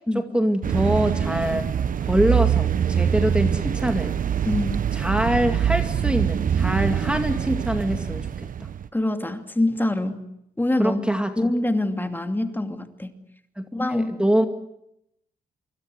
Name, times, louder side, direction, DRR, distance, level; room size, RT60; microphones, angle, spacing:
voice 1, 0.1-1.7 2.0-4.1 4.9-8.5 10.8-11.3 13.6-14.5, equal, 5° right, 6 dB, 2.3 m, -24 dB
sound 1, 0.6-8.9, right 8 dB, 55° right, 1.0 m, -24 dB
voice 2, 4.4-4.8 8.9-10.2 10.6-11.0 11.4-13.1 13.7-14.2, left 1 dB, 10° left, 6 dB, 2.6 m, -24 dB
25.5 x 25.0 x 8.0 m, 0.79 s
cardioid pair, 75°, 16 cm